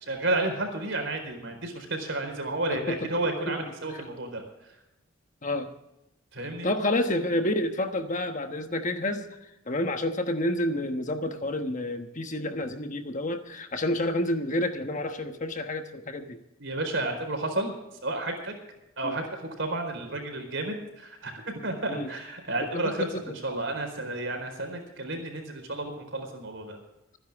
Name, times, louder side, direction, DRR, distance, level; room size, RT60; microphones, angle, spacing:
voice 1, 0.0-4.7 6.3-6.7 16.6-17.8 18.0-18.6 19.0-26.8, right 2 dB, 60° right, 5 dB, 4.4 m, -32 dB
voice 2, 6.6-16.4 19.0-19.2 21.9-22.1 22.7-23.2, left 1 dB, 35° left, 6 dB, 1.2 m, -29 dB
26.0 x 10.5 x 3.6 m, 0.89 s
head